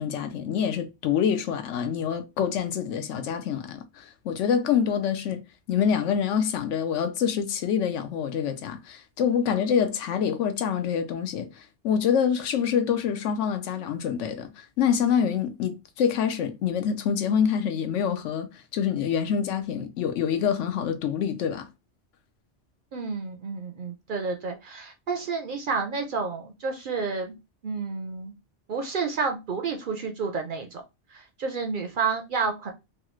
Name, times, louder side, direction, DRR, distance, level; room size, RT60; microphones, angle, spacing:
voice 1, 0.0-5.4 5.7-18.5 18.7-21.7, left 8 dB, 80° left, 0.9 m, -26 dB
voice 2, 22.9-27.3 27.6-28.3 28.7-30.8 31.1-32.7, right 4 dB, 55° right, 0.6 m, -30 dB
3.1 x 2.4 x 3.0 m
omnidirectional pair, 1.2 m